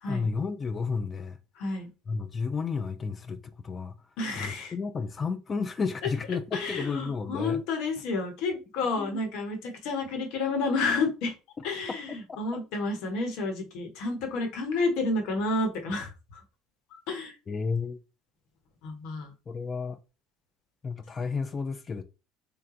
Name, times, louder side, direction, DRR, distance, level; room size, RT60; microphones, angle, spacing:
voice 1, 0.0-1.4 2.1-4.0 4.4-7.6 9.0-9.1 17.5-18.0 19.5-20.0 20.8-22.0, left 5 dB, 30° left, 0.4 m, -32 dB
voice 2, 1.5-1.9 4.2-4.7 6.5-11.3 11.6-16.4 16.9-17.4 18.8-19.3, left 3 dB, 70° left, 1.1 m, -30 dB
3.3 x 2.2 x 3.7 m
supercardioid pair, 80°, 0 cm